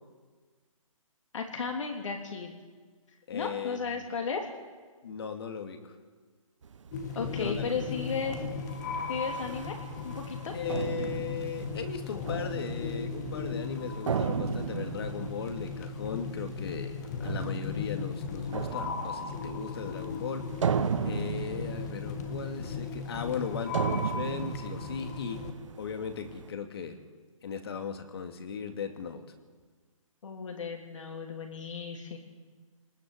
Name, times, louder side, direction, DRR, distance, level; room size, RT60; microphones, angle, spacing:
voice 1, 1.3-2.6 3.3-4.5 7.1-8.4 9.1-9.8 10.0-10.5 30.2-32.2, left 5 dB, 65° left, 2 dB, 3.3 m, -34 dB
voice 2, 3.3-4.2 5.0-6.0 7.3-7.7 10.5-20.5 21.0-25.5 25.8-27.0 27.4-29.2, left 6 dB, 45° left, 6 dB, 2.4 m, -37 dB
sound 1, 6.6-26.5, right 7 dB, 60° right, 1.0 m, -37 dB
sound 2, 6.9-25.5, left 5 dB, 30° left, 1.7 m, -37 dB
22.5 x 20.0 x 8.1 m, 1.5 s
hypercardioid pair, 165°, 17 cm